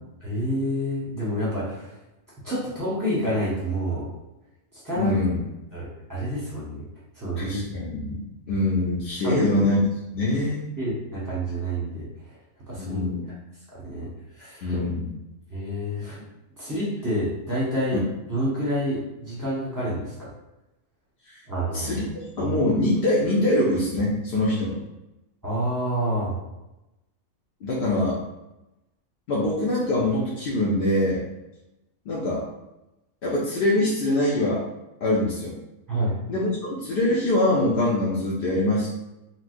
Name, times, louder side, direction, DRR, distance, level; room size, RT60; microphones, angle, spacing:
voice 1, 0.2-2.0 2.4-4.1 4.7-5.1 5.7-6.9 7.2-7.6 9.2-9.6 10.8-12.1 12.7-13.0 13.7-14.1 14.3-14.8 15.5-16.2 16.6-18.0 18.3-20.3 21.5-22.0 22.4-22.6 25.4-26.4 35.9-36.2, equal, 15° right, -8 dB, 0.9 m, -28 dB
voice 2, 5.0-5.4 7.4-8.2 8.5-9.8 10.1-10.7 12.8-13.2 13.9-14.1 14.6-15.1 17.9-18.0 21.3-21.4 21.7-22.0 22.4-24.8 27.6-28.2 29.3-31.2 32.1-32.4 33.2-34.6 35.0-35.5 36.3-38.9, left 1 dB, 60° left, -5 dB, 0.6 m, -24 dB
4.1 x 2.1 x 2.5 m, 0.96 s
omnidirectional pair, 1.4 m